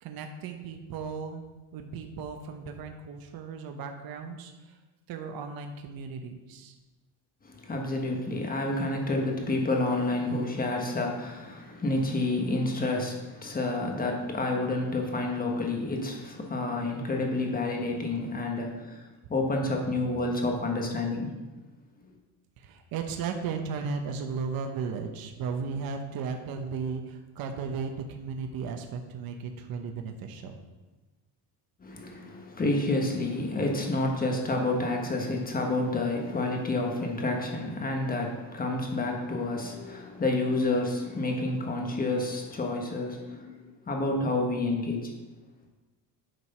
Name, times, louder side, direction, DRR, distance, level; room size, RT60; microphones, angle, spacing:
voice 1, 0.0-1.5 1.7-4.8 5.1-6.7 22.6-30.6, right 5 dB, 60° right, 5 dB, 1.0 m, -35 dB
voice 2, 7.6-19.0 19.3-21.3 31.8-45.1, left 2 dB, 20° left, 1 dB, 1.4 m, -29 dB
9.2 x 4.7 x 5.5 m, 1.2 s
cardioid pair, 140°, 40 cm